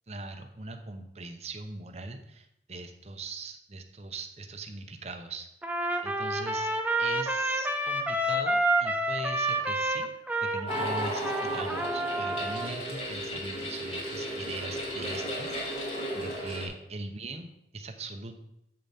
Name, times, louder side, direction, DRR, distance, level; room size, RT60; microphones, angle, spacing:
voice 1, 0.1-5.5 6.0-6.7 7.0-10.1 10.4-18.4, right 3 dB, 35° right, 6 dB, 0.8 m, -41 dB
Trumpet, 5.6-12.7, right 1 dB, 10° right, 0.5 m, -29 dB
sound 1, 10.7-16.7, equal, 35° left, 2.3 m, -34 dB
7.7 x 6.7 x 4.2 m, 0.81 s
head